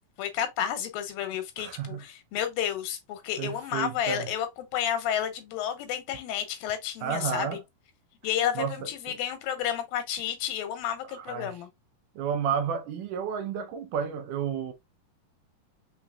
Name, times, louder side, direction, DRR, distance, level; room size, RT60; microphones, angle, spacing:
voice 1, 0.2-4.5 4.7-7.6 8.2-11.7, left 10 dB, 85° left, 2.8 m, -31 dB
voice 2, 1.6-2.0 3.4-4.3 7.0-7.6 8.6-8.7 9.1-9.2 11.1-11.5 12.2-14.7, right 7 dB, 75° right, 2.1 m, -31 dB
5.7 x 3.9 x 2.3 m
omnidirectional pair, 4.0 m